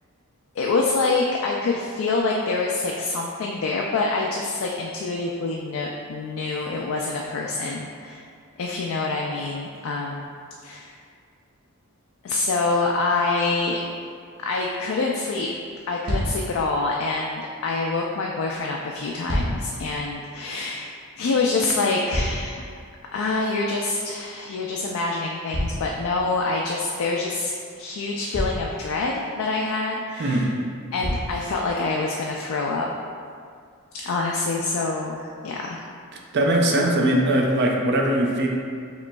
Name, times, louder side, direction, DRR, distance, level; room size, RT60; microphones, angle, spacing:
voice 1, 0.6-8.2 8.6-10.2 10.6-10.9 12.2-13.8 14.4-15.5 15.9-20.9 21.2-22.6 23.1-30.5 30.9-32.9 33.9-35.8, left 3 dB, 65° left, -1 dB, 0.3 m, -26 dB
sound 1, 15.2-15.3 15.6-15.8 16.0-16.5 18.9-19.8 21.6-22.7 25.5-26.5 27.7-27.8 28.3-28.8 30.2-30.3 31.0-31.4 32.2-32.3, equal, 70° right, 1.1 m, -28 dB
voice 2, 30.2-30.5 36.1-38.5, right 1 dB, 50° right, 0 dB, 0.4 m, -21 dB
5.0 x 3.0 x 2.3 m, 2.2 s
head